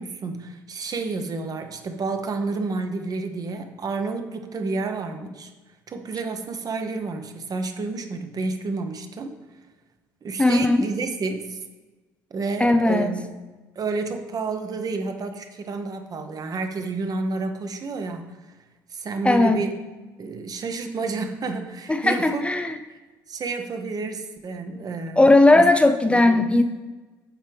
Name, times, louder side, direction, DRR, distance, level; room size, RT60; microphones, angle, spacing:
voice 1, 0.0-5.5 5.9-9.4 10.2-11.6 12.3-13.3 13.7-18.3 18.9-19.7 20.2-22.4 22.9-23.0 23.3-25.6 26.1-26.5, right 3 dB, 35° right, 7 dB, 1.0 m, -30 dB
voice 2, 10.4-10.8 12.6-13.1 19.2-19.6 21.9-22.8 25.2-26.6, left 2 dB, 10° left, 7 dB, 0.5 m, -17 dB
13.0 x 5.5 x 3.5 m, 1.2 s
figure-of-eight pair, 55°, 11 cm